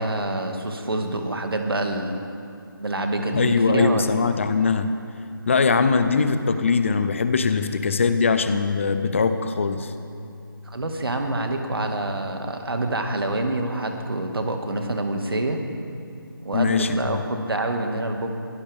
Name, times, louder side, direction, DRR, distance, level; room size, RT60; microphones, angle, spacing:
voice 1, 0.0-2.2 2.8-4.1 10.7-15.6 16.4-18.3, right 2 dB, 80° right, 4 dB, 2.1 m, -26 dB
voice 2, 3.3-4.9 5.5-9.9 16.5-17.2, left 5 dB, 35° left, 10 dB, 0.7 m, -21 dB
sound 1, 7.3-13.5, left 4 dB, 5° left, 0.4 m, -40 dB
23.0 x 16.0 x 3.6 m, 2.5 s
figure-of-eight pair, 170°, 12 cm